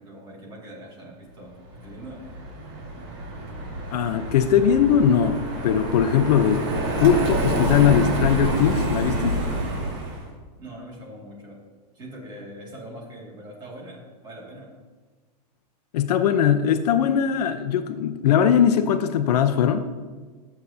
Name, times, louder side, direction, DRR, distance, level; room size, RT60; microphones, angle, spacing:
voice 1, 0.0-2.3 10.6-11.6 11.9-14.7, right 1 dB, 20° right, -3 dB, 2.3 m, -42 dB
Car passing by, 1.7-10.3, right 1 dB, 55° right, 3.2 m, -27 dB
voice 2, 3.9-5.4 5.6-6.7 7.0-9.4 15.9-19.9, left 8 dB, 75° left, 9 dB, 0.7 m, -20 dB
13.0 x 8.0 x 2.8 m, 1.4 s
supercardioid pair, 165°, 21 cm